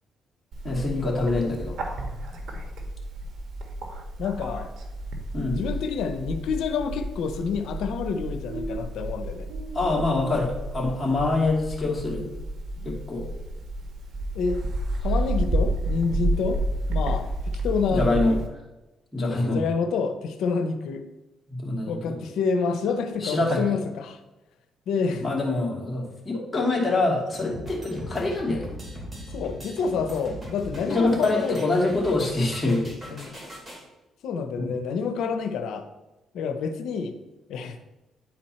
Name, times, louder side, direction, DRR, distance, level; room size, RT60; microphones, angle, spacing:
Bird, 0.5-18.5, right 1 dB, 70° right, 1.3 m, -31 dB
voice 1, 0.6-1.8 5.3-5.6 9.7-12.3 12.8-13.3 17.9-18.3 19.1-19.6 21.5-22.2 23.2-23.6 25.2-28.7 30.8-32.8 34.6-34.7, left 2 dB, 20° left, -3 dB, 2.7 m, -25 dB
voice 2, 4.2-4.7 5.5-9.5 12.8-12.9 14.3-14.6 15.0-16.6 16.9-17.3 17.6-18.4 19.3-21.0 21.8-24.2 24.9-25.3 27.4-27.6 29.3-31.7 33.1-33.4 34.2-35.9 36.3-37.1 37.5-37.9, left 5 dB, 80° left, 8 dB, 0.7 m, -28 dB
sound 1, 27.3-33.8, equal, 15° right, 2.8 m, -40 dB
10.0 x 4.3 x 4.3 m, 1.0 s
cardioid pair, 90°, 0 cm